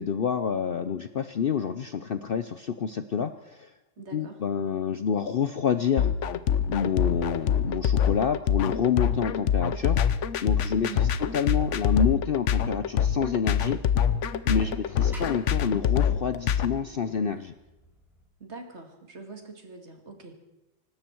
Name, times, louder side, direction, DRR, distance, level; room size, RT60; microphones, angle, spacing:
voice 1, 0.0-3.7 4.1-6.1 6.7-10.0 10.4-13.8 14.5-17.5, left 7 dB, 90° left, 11 dB, 0.5 m, -28 dB
voice 2, 4.0-4.4 10.7-11.1 14.5-14.8 18.4-20.3, right 4 dB, 40° right, 5 dB, 2.3 m, -43 dB
sound 1, 6.0-16.7, left 8 dB, 60° left, 0.9 m, -25 dB
sound 2, 13.3-18.3, equal, ahead, 4.2 m, -54 dB
25.0 x 12.5 x 4.5 m, 1.0 s
omnidirectional pair, 1.8 m